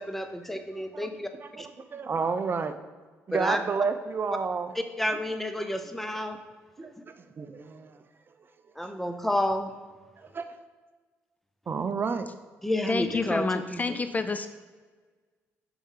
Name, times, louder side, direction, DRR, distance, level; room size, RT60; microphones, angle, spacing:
voice 1, 0.0-1.3 1.6-1.7 3.3-3.6 5.0-6.4 8.8-9.7 12.6-13.8, left 1 dB, 5° left, 7 dB, 0.8 m, -30 dB
voice 2, 0.9-2.7 3.3-4.7 6.8-6.9 7.4-8.0 10.2-10.6 11.7-12.3, right 5 dB, 40° right, 9 dB, 0.5 m, -31 dB
voice 3, 12.9-14.5, left 4 dB, 30° left, 9 dB, 0.5 m, -28 dB
6.9 x 4.8 x 3.9 m, 1.4 s
supercardioid pair, 65°, 6 cm